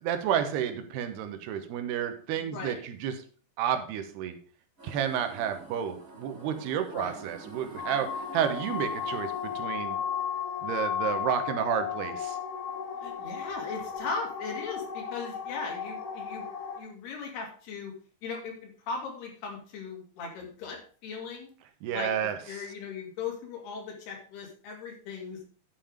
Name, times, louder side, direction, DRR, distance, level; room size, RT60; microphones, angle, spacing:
voice 1, 0.0-3.2 3.6-4.4 4.8-10.0 10.6-12.4 21.8-22.6, right 9 dB, 90° right, 8 dB, 3.1 m, -31 dB
voice 2, 2.4-2.8 6.8-7.1 13.0-16.4 16.8-17.9 18.2-21.5 21.9-22.1 22.5-25.4, left 5 dB, 80° left, 1 dB, 4.5 m, -38 dB
sound 1, 4.8-9.6, right 3 dB, 15° right, 3.0 m, -47 dB
sound 2, 7.8-16.8, left 8 dB, 65° left, 3.7 m, -34 dB
11.0 x 5.8 x 5.0 m, 0.43 s
omnidirectional pair, 4.5 m